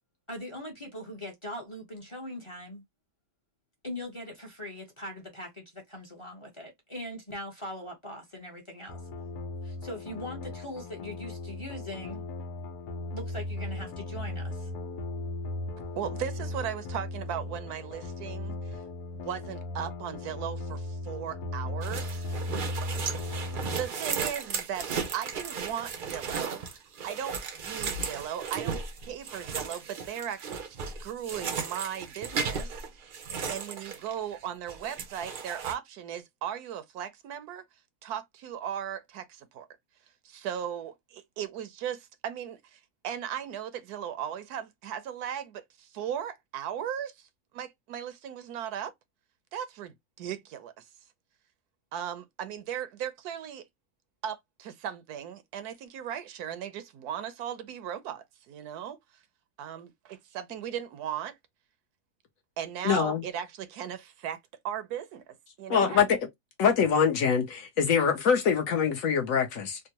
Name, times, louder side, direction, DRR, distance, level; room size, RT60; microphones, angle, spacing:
voice 1, 0.3-2.8 3.8-9.0 9.6-12.2 13.1-14.7, left 1 dB, 30° left, 0.6 m, -41 dB
sound 1, 8.9-23.9, left 2 dB, 90° left, 1.3 m, -37 dB
voice 2, 16.0-18.8 19.1-22.2 23.6-26.6 27.0-28.8 29.1-33.2 33.5-37.6 38.0-39.7 40.2-47.3 47.5-48.9 49.5-50.8 51.9-53.6 54.2-59.0 59.6-61.4 62.6-64.4 64.6-66.0, right 9 dB, 80° right, 1.1 m, -37 dB
sound 2, 21.8-34.4 34.7-35.7, right 5 dB, 60° right, 0.5 m, -35 dB
voice 3, 62.8-63.2 65.7-66.2 66.6-69.8, left 6 dB, 65° left, 1.1 m, -24 dB
3.5 x 2.1 x 2.8 m
omnidirectional pair, 1.7 m